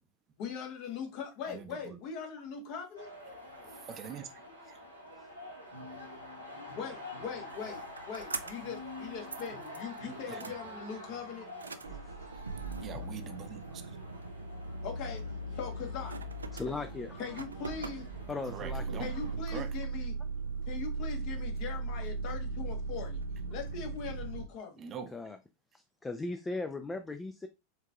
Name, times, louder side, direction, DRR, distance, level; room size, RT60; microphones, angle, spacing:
voice 1, 0.4-3.1 6.7-11.5 14.8-16.2 17.2-18.1 19.0-20.2 20.7-23.2 23.5-24.9, left 6 dB, 50° left, 1.1 m, -41 dB
voice 2, 1.5-2.0 3.6-4.3 4.7-4.8 10.3-10.5 12.8-13.9 18.5-19.1 19.5-19.7 24.8-25.1, right 7 dB, 30° right, 0.6 m, -43 dB
sound 1, 2.9-19.3, left 1 dB, 90° left, 1.2 m, -48 dB
sound 2, 7.5-8.8 9.1-10.0 10.4-10.5 11.5-24.5, right 3 dB, 80° right, 0.3 m, -38 dB
voice 3, 16.5-17.4 18.3-19.0 25.1-25.4 25.7-27.5, left 3 dB, 15° left, 0.4 m, -38 dB
4.5 x 3.6 x 2.3 m
figure-of-eight pair, 85°, 0 cm